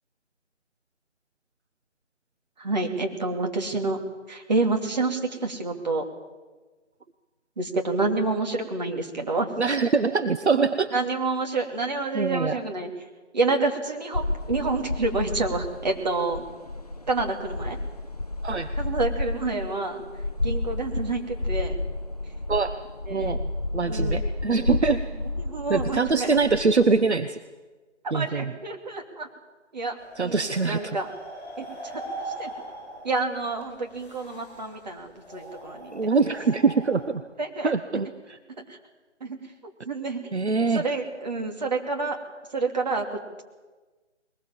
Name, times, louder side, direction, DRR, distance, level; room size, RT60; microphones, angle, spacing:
voice 1, 2.6-4.0 4.3-6.0 7.6-9.5 10.9-12.9 13.3-16.4 17.1-17.8 18.7-20.0 20.4-21.7 23.1-23.3 23.9-24.2 25.4-26.3 28.1-29.3 29.7-30.0 30.2-31.1 31.6-31.7 31.9-32.0 32.4-32.5 33.0-35.9 37.4-37.7 38.7-38.8 39.2-39.4 39.8-40.3 40.6-42.2 42.5-43.4, right 3 dB, 35° right, 3 dB, 2.8 m, -28 dB
voice 2, 9.6-10.9 12.1-12.6 18.4-18.7 22.5-22.8 23.1-25.1 25.7-27.4 28.1-28.5 30.2-31.0 35.9-37.2 37.6-38.4 40.3-40.8, right 4 dB, 65° right, 10 dB, 1.1 m, -24 dB
sound 1, 14.1-27.1, left 2 dB, 35° left, 0.6 m, -31 dB
sound 2, 30.0-37.1, right 1 dB, 5° left, 7.8 m, -41 dB
22.0 x 20.5 x 7.3 m, 1.3 s
figure-of-eight pair, 165°, 36 cm